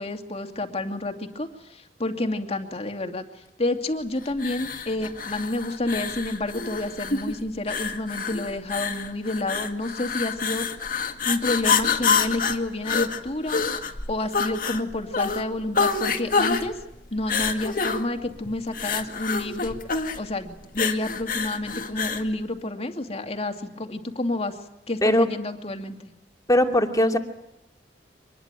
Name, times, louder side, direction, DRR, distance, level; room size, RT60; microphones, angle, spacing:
voice 1, 0.0-3.2 3.6-10.7 11.2-13.6 14.1-16.8 17.1-19.7 20.2-24.6 24.9-26.1, left 2 dB, 35° left, 5 dB, 2.5 m, -29 dB
sound 1, 4.4-22.3, left 5 dB, 50° left, 2.0 m, -27 dB
voice 2, 26.5-27.2, left 1 dB, 20° left, 4 dB, 2.7 m, -19 dB
25.5 x 21.0 x 9.1 m, 0.88 s
head